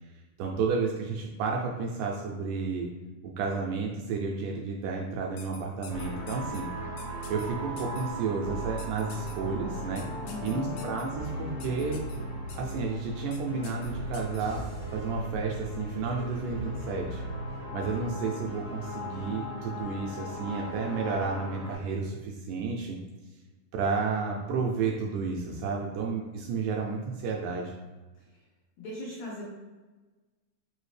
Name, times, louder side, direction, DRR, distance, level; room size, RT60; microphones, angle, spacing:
voice 1, 0.4-2.9 3.2-6.7 7.3-10.0 10.4-12.0 12.6-14.6 14.9-17.2 17.7-23.0 23.7-27.7, right 4 dB, 80° right, -1 dB, 1.8 m, -31 dB
sound 1, 5.4-6.6 7.0-7.5 7.8-8.0 8.8-9.3 10.0-11.0 11.6-12.2 12.5-12.7 13.3-13.4 13.6-14.4, left 6 dB, 90° left, 2.2 m, -47 dB
sound 2, 5.9-21.7, equal, 55° left, 2.1 m, -37 dB
voice 2, 10.2-10.9 28.2-28.5 28.8-29.4, left 2 dB, 70° left, -5 dB, 1.7 m, -40 dB
sound 3, 14.4-18.7, right 2 dB, 60° right, 1.1 m, -48 dB
4.9 x 2.7 x 3.2 m, 1.2 s
omnidirectional pair, 3.8 m